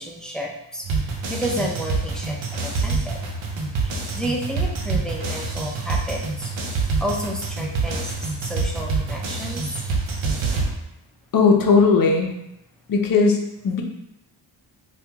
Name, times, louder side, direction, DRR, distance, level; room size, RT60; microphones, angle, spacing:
voice 1, 0.0-3.3 3.8-8.1 8.4-9.7, equal, ahead, -1 dB, 0.4 m, -31 dB
sound 1, 0.8-10.7, right 3 dB, 75° right, 0.7 m, -26 dB
voice 2, 11.3-12.3 12.9-13.8, left 4 dB, 50° left, 2 dB, 0.6 m, -17 dB
2.9 x 2.3 x 3.4 m, 0.85 s
cardioid pair, 90°, 46 cm